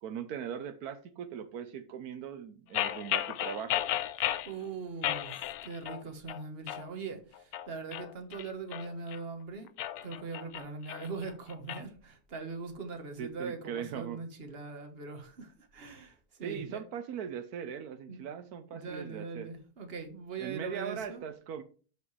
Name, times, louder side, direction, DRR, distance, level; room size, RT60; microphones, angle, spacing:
voice 1, 0.0-3.9 13.2-14.2 16.4-19.5 20.4-21.6, right 8 dB, 80° right, 1.3 m, -39 dB
sound 1, 2.7-4.5 5.0-6.0 6.3-6.9 7.3-9.2 9.7-11.8, left 12 dB, 80° left, 1.1 m, -34 dB
voice 2, 4.2-9.7 10.0-16.8 18.1-18.2 18.7-21.2, right 4 dB, 40° right, 1.5 m, -41 dB
12.5 x 4.9 x 3.3 m
omnidirectional pair, 1.6 m